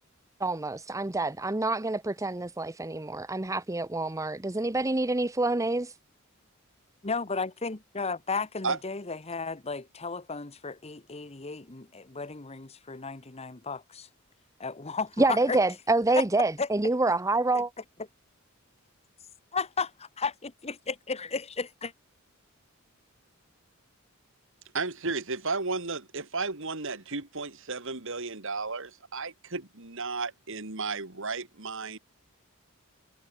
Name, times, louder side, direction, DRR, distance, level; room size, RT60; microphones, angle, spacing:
voice 1, 0.4-5.9 15.2-17.7, right 2 dB, 15° right, 0.8 m, -27 dB
voice 2, 7.0-14.1 14.6-15.6 16.1-16.2 16.6-16.7 17.5-17.6 19.5-21.9, left 4 dB, 30° left, 1.2 m, -34 dB
voice 3, 24.7-32.0, right 4 dB, 65° right, 2.9 m, -33 dB
head